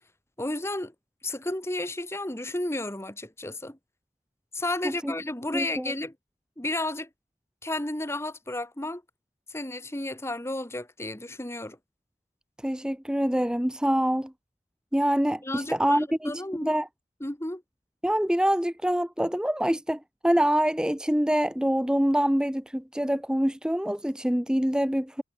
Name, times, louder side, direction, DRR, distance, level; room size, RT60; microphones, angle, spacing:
voice 1, 0.4-0.9 1.2-3.8 4.5-6.2 6.6-7.1 7.6-9.0 9.5-11.8 15.4-16.7 17.2-17.6, left 1 dB, 15° left, 1.8 m, -32 dB
voice 2, 5.5-5.9 12.6-14.3 14.9-16.3 16.6-16.9 18.0-25.2, equal, 5° right, 0.9 m, -25 dB
head